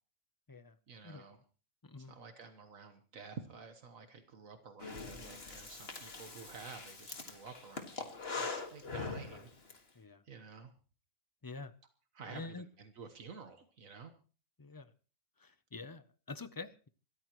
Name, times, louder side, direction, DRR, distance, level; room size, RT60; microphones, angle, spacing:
voice 1, 0.9-1.4 2.0-9.5 9.9-10.7 12.1-14.1, right 5 dB, 75° right, 7 dB, 1.7 m, -51 dB
voice 2, 1.8-2.1 10.0-10.2 11.4-11.7 12.3-12.7 14.6-14.9 15.4-16.9, left 3 dB, 30° left, 13 dB, 0.4 m, -47 dB
Breathing, 4.8-9.8, left 4 dB, 45° left, 2.1 m, -43 dB
26.0 x 13.5 x 3.0 m, 0.38 s
omnidirectional pair, 1.4 m